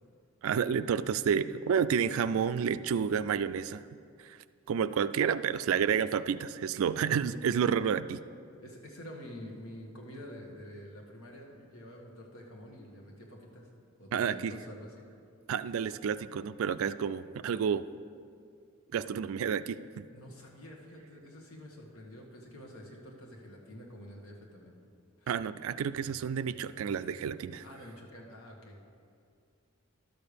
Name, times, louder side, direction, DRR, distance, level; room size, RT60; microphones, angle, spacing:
voice 1, 0.4-3.8 4.2-4.4 4.7-8.2 14.1-14.6 15.5-17.9 18.9-20.1 25.3-27.7, right 7 dB, 75° right, 14 dB, 0.3 m, -30 dB
voice 2, 8.6-13.7 14.0-15.0 20.1-24.7 25.2-25.3 27.6-28.8, equal, 80° left, -1 dB, 1.6 m, -48 dB
12.0 x 6.7 x 5.1 m, 2.3 s
head